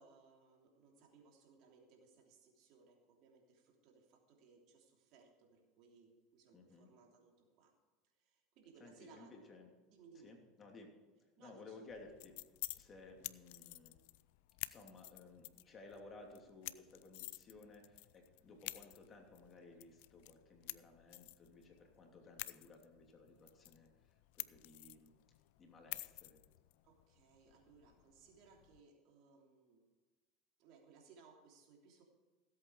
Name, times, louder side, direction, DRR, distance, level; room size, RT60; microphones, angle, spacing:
voice 1, 0.0-7.7 8.2-10.4 11.4-11.8 26.8-29.8 30.6-32.0, right 5 dB, 60° right, 1 dB, 3.0 m, -65 dB
voice 2, 6.5-6.9 8.8-9.7 10.2-10.9 11.4-12.4 12.7-14.0 14.6-23.9 24.3-25.1 25.6-26.4, left 3 dB, 30° left, 2 dB, 2.9 m, -57 dB
sound 1, 11.9-28.8, left 21 dB, 75° left, 0.4 m, -51 dB
16.5 x 8.3 x 4.8 m, 1.3 s
supercardioid pair, 105°, 0 cm